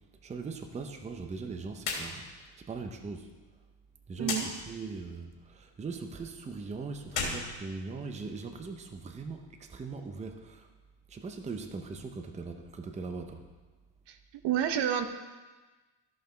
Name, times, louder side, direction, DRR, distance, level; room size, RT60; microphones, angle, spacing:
voice 1, 0.2-2.3 2.6-3.3 4.1-10.7 11.1-13.4, right 4 dB, 15° right, 5 dB, 0.6 m, -40 dB
sound 1, 1.8-2.1 2.4-2.5 4.2-4.5 7.0-8.3, left 4 dB, 75° left, 2.9 m, -34 dB
voice 2, 14.1-15.1, right 9 dB, 70° right, 8 dB, 0.9 m, -29 dB
14.0 x 5.5 x 3.8 m, 1.3 s
cardioid pair, 135°, 44 cm